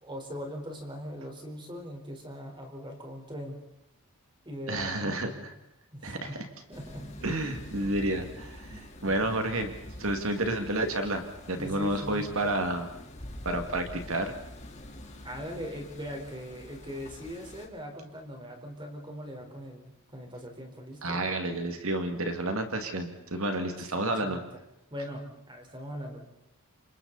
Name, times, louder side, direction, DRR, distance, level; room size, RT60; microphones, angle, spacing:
voice 1, 0.0-3.6 4.4-5.5 5.9-6.4 6.7-7.1 11.6-12.3 15.2-21.2 24.2-24.6 24.9-26.2, equal, 20° right, 2 dB, 4.3 m, -40 dB
voice 2, 4.7-5.5 6.0-6.4 7.2-9.7 10.0-12.9 13.4-14.3 21.0-24.4, right 1 dB, 65° right, 6 dB, 2.2 m, -30 dB
sound 1, 6.7-17.7, left 1 dB, 30° left, 3.5 m, -46 dB
29.5 x 27.0 x 4.1 m, 0.86 s
head